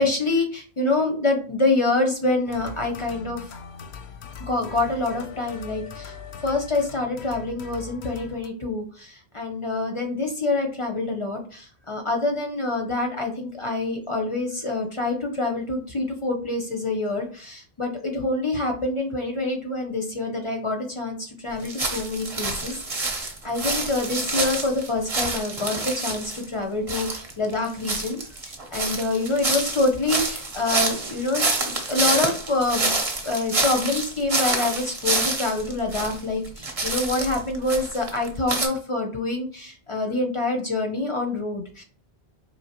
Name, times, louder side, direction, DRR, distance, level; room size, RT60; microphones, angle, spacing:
voice 1, 0.0-3.4 4.5-6.1 6.4-32.9 33.2-41.8, left 2 dB, 40° left, 2 dB, 0.5 m, -26 dB
sound 1, 2.5-8.5, left 6 dB, 85° left, 0.8 m, -40 dB
sound 2, 21.6-26.4 26.9-36.2 36.4-38.7, right 3 dB, 40° right, 0.8 m, -27 dB
4.3 x 3.0 x 2.8 m, 0.42 s
omnidirectional pair, 1.1 m